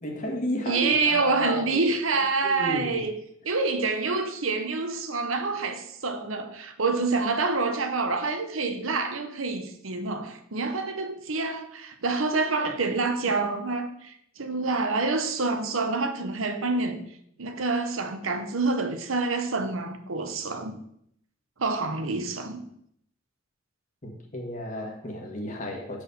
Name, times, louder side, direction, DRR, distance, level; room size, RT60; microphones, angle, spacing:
voice 1, 0.0-1.9 2.4-3.0 24.0-26.0, equal, 40° left, 1.7 m, -33 dB
voice 2, 0.7-3.2 3.4-17.0 17.4-20.8 21.6-22.7, right 3 dB, 75° right, 1.0 m, -27 dB
6.3 x 4.9 x 6.7 m
head